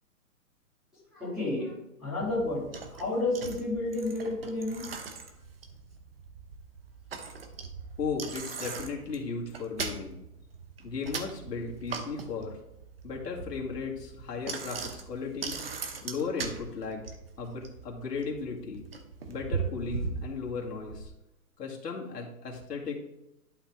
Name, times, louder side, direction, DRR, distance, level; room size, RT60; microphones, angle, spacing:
voice 1, 1.1-1.7 2.0-4.9, left 2 dB, ahead, -13 dB, 3.3 m, -31 dB
Bicycle, 2.2-21.1, right 5 dB, 40° right, 0.9 m, -40 dB
voice 2, 8.0-10.2 10.8-12.6 13.0-15.6 16.0-17.0 17.4-18.8 19.3-21.1 21.6-22.9, left 5 dB, 85° left, -2 dB, 2.5 m, -36 dB
11.5 x 5.8 x 3.7 m, 0.88 s
hypercardioid pair, 175°, 47 cm